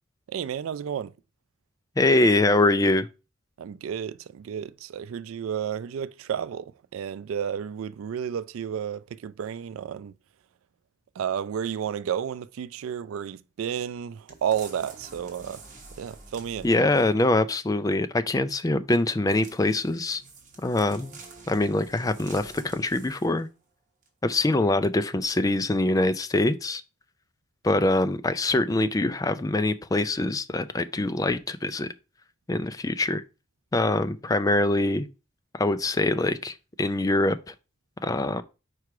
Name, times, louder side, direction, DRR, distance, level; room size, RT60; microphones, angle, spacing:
voice 1, 0.3-1.1 3.6-10.1 11.2-15.6 16.0-16.7, right 8 dB, 85° right, 0.3 m, -32 dB
voice 2, 2.0-3.1 16.6-20.2 20.6-21.1 21.5-23.5 24.2-26.8 27.6-31.9 32.5-33.2 33.7-35.1 35.5-37.5 38.0-38.4, left 2 dB, 15° left, 0.3 m, -24 dB
sound 1, 14.3-17.3 19.3-23.5 24.0-24.1, right 3 dB, 40° right, 1.4 m, -48 dB
4.8 x 4.7 x 4.7 m
head